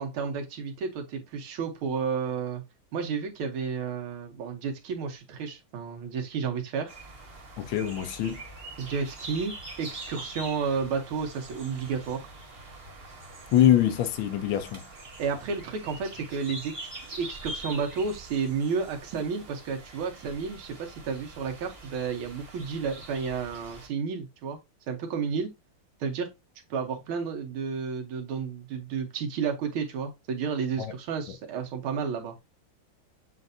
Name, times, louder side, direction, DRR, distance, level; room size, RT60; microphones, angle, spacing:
voice 1, 0.0-2.6 2.9-6.9 8.8-12.3 15.2-16.7 17.2-24.6 24.9-25.5 26.0-26.3 26.7-32.3, right 5 dB, 80° right, 1.8 m, -31 dB
sound 1, 6.9-23.9, right 2 dB, 35° right, 1.1 m, -44 dB
voice 2, 7.6-8.4 13.5-14.9 30.8-30.9, left 11 dB, 75° left, 1.4 m, -24 dB
7.5 x 2.5 x 2.6 m
omnidirectional pair, 2.3 m